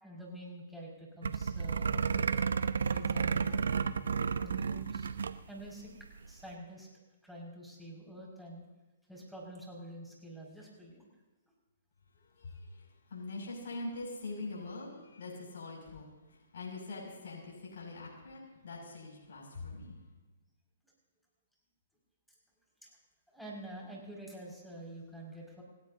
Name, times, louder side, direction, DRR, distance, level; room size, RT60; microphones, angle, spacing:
voice 1, 0.0-2.3 2.9-3.5 4.4-5.9 6.3-6.9 7.2-8.6 9.1-11.1 22.8-22.9 23.3-25.6, right 1 dB, ahead, -3 dB, 6.1 m, -47 dB
sound 1, 1.2-5.4 5.7-5.8 6.0-6.3, right 6 dB, 80° right, 0.9 m, -32 dB
voice 2, 12.4-12.8 13.1-20.0, left 2 dB, 65° left, -3 dB, 6.7 m, -43 dB
29.5 x 17.0 x 2.9 m, 1.2 s
hypercardioid pair, 135°, 0 cm